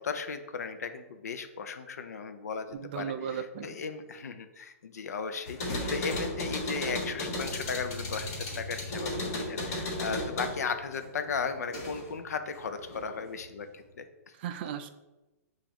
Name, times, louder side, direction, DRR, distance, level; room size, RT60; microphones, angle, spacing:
voice 1, 0.0-14.3, left 5 dB, 85° left, 9 dB, 0.5 m, -36 dB
voice 2, 2.7-3.8 14.4-14.9, right 8 dB, 40° right, 9 dB, 0.4 m, -36 dB
sound 1, 5.5-12.2 12.5-13.4, left 1 dB, 65° left, 1.5 m, -35 dB
6.7 x 2.5 x 3.0 m, 1.1 s
hypercardioid pair, 150°, 8 cm